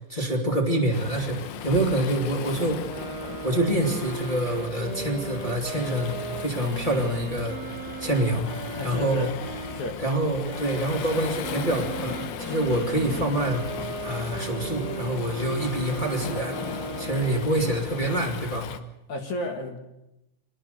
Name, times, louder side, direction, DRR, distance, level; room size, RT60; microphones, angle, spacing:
voice 1, 0.0-2.9 3.4-6.1 6.4-7.6 8.0-8.5 8.8-9.3 10.0-13.6 14.0-16.6 17.0-18.7, right 1 dB, 15° left, -1 dB, 1.8 m, -26 dB
Waves surf, 0.9-18.8, left 9 dB, 70° left, 2.7 m, -37 dB
sound 1, 2.8-9.9 10.5-17.6, right 6 dB, 55° right, 1.8 m, -37 dB
voice 2, 8.7-9.3 9.7-10.0 19.1-19.8, left 1 dB, 55° left, 4 dB, 2.7 m, -32 dB
24.5 x 19.5 x 6.7 m, 0.91 s
omnidirectional pair, 5.0 m